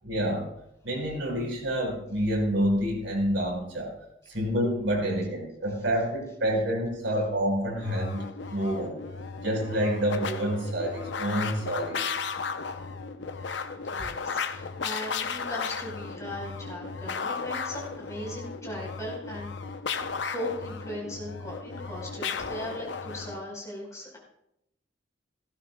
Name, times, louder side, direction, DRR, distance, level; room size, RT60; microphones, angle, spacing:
voice 1, 0.0-0.5 0.8-3.9 4.3-9.0 9.4-12.2 13.6-13.7, equal, 85° right, 0 dB, 4.5 m, -28 dB
sound 1, 7.8-23.4, left 5 dB, 70° left, 0.7 m, -35 dB
voice 2, 13.9-19.5 19.9-24.2, left 1 dB, 15° left, -3 dB, 4.5 m, -38 dB
17.5 x 16.0 x 2.3 m, 0.80 s
head